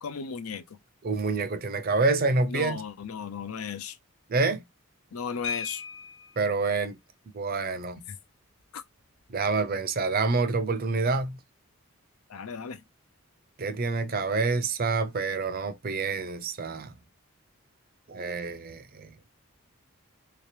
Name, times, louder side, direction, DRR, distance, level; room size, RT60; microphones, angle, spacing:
voice 1, 0.0-0.6 2.5-4.0 5.1-5.8 8.1-8.2 8.7-8.8 12.3-12.8, left 6 dB, 85° left, 0.5 m, -35 dB
voice 2, 1.0-2.8 4.3-4.6 6.4-7.0 7.3-8.0 9.3-11.4 13.6-16.9 18.1-19.1, right 3 dB, 45° right, 0.5 m, -27 dB
sound 1, 5.4-6.5 8.0-8.1 8.4-8.6 9.0-9.3, left 5 dB, 60° left, 0.9 m, -37 dB
3.3 x 2.9 x 3.2 m
head